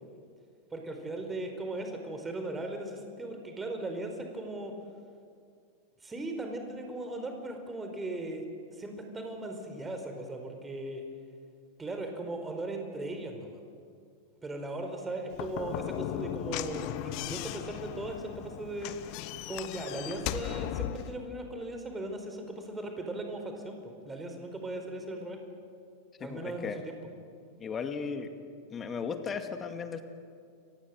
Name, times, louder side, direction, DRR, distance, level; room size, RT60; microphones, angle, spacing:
voice 1, 0.7-4.7 6.0-8.5 8.7-11.0 11.8-13.6 14.4-18.9 19.5-25.4 26.2-27.0, right 2 dB, 15° right, 5 dB, 4.6 m, -38 dB
Slam / Knock, 15.3-21.2, left 13 dB, 45° left, 1.2 m, -37 dB
voice 2, 26.2-26.8 27.6-28.3 28.7-30.0, left 6 dB, 20° left, 8 dB, 2.2 m, -36 dB
30.0 x 24.5 x 7.8 m, 2.3 s
figure-of-eight pair, 90°, 0 cm